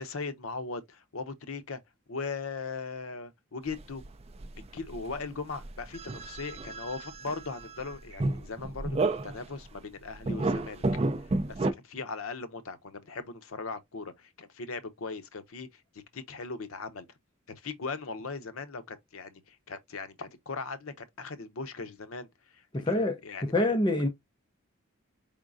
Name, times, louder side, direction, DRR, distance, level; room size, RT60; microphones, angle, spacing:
voice 1, 0.0-1.8 2.1-4.0 4.6-10.8 11.5-15.8 16.1-17.1 17.5-22.3 22.5-23.6, left 4 dB, 75° left, 0.7 m, -39 dB
sound 1, 3.7-5.2 5.5-9.7 10.1-11.7, right 2 dB, 30° right, 0.4 m, -32 dB
voice 2, 22.7-23.2 23.5-24.1, left 1 dB, 20° left, 0.6 m, -25 dB
4.7 x 3.6 x 2.4 m
head